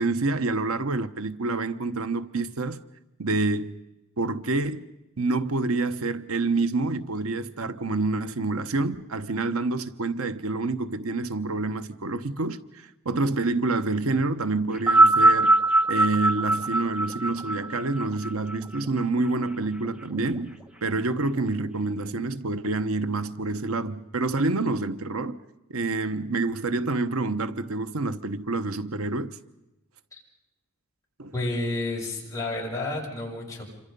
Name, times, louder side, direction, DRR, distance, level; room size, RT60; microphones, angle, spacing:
voice 1, 0.0-2.8 3.2-3.7 4.2-4.8 5.2-15.6 15.9-25.4 25.7-29.3 31.2-31.3, right 3 dB, 85° right, 1.0 m, -27 dB
sound 1, 14.7-19.3 20.2-20.3, right 2 dB, 5° right, 1.1 m, -21 dB
voice 2, 31.3-33.6, left 2 dB, 15° left, 7.0 m, -30 dB
28.0 x 25.5 x 5.4 m
head